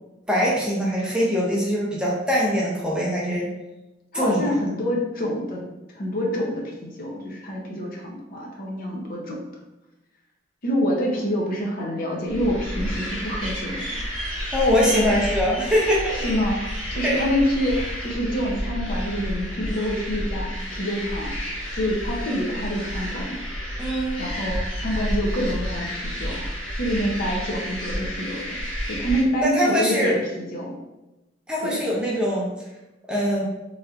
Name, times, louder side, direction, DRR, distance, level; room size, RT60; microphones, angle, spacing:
voice 1, 0.3-3.5 4.1-4.4 14.5-16.2 17.0-17.3 23.8-24.2 29.4-30.2 31.5-32.5 33.1-33.4, equal, 5° right, -5 dB, 0.5 m, -22 dB
voice 2, 4.1-5.6 5.9-9.4 10.6-14.0 14.9-15.1 16.1-21.3 21.7-23.4 24.2-28.6 28.9-30.7 31.6-31.8, equal, 50° left, -1 dB, 0.6 m, -27 dB
sound 1, 12.3-29.2, equal, 25° left, 1.2 m, -30 dB
3.2 x 2.7 x 2.4 m, 0.99 s
head